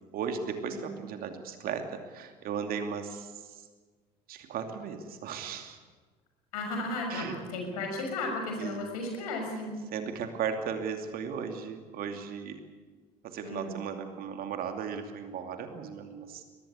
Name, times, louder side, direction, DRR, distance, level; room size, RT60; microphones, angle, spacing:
voice 1, 0.1-3.7 4.3-5.8 7.1-7.4 8.6-8.9 9.9-12.6 13.2-16.4, right 6 dB, 45° right, 6 dB, 2.7 m, -36 dB
voice 2, 6.5-9.8 13.4-13.7, left 2 dB, 65° left, 3 dB, 6.3 m, -34 dB
23.0 x 19.0 x 8.4 m, 1.4 s
figure-of-eight pair, 65°, 20 cm